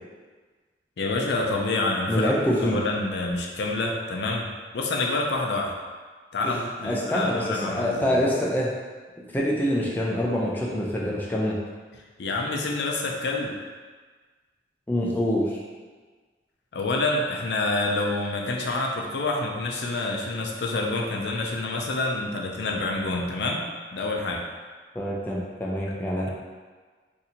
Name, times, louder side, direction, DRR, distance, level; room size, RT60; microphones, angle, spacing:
voice 1, 1.0-2.3 2.6-5.7 6.3-8.2 12.2-13.5 16.7-23.6 23.9-24.4 25.9-26.0, left 2 dB, 75° left, 0 dB, 0.5 m, -27 dB
voice 2, 2.1-2.8 6.4-6.5 6.8-8.7 9.3-11.6 14.9-15.6 24.9-26.3, equal, 10° left, -4 dB, 0.4 m, -25 dB
2.7 x 2.6 x 4.2 m, 1.4 s
head